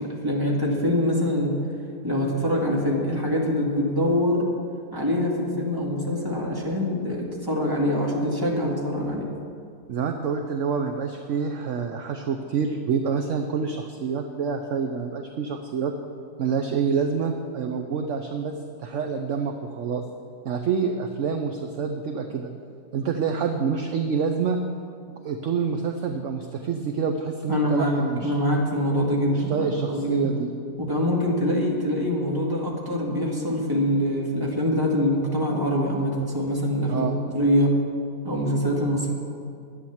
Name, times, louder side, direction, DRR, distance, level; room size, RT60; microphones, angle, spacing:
voice 1, 0.0-1.6 2.0-4.5 4.9-9.3 27.5-27.9 28.2-30.3 30.8-37.8 38.2-39.1, equal, 15° right, -3 dB, 2.0 m, -24 dB
voice 2, 9.9-15.9 16.4-20.0 20.4-22.5 22.9-24.6 25.1-28.3 29.3-30.5 36.9-37.2, right 6 dB, 60° right, 5 dB, 0.9 m, -27 dB
11.5 x 9.2 x 7.2 m, 2.4 s
omnidirectional pair, 1.7 m